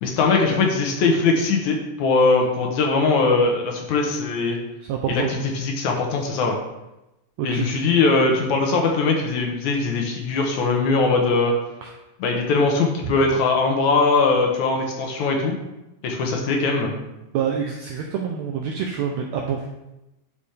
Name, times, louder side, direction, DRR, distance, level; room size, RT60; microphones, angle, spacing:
voice 1, 0.0-4.6 5.1-6.6 7.4-11.5 12.2-15.6 16.0-17.0, left 3 dB, 70° left, 1 dB, 2.2 m, -21 dB
voice 2, 4.8-5.3 7.4-7.8 11.8-11.9 13.0-13.1 17.3-19.7, right 7 dB, 80° right, 1 dB, 1.6 m, -27 dB
11.0 x 5.0 x 3.4 m, 0.94 s
omnidirectional pair, 3.8 m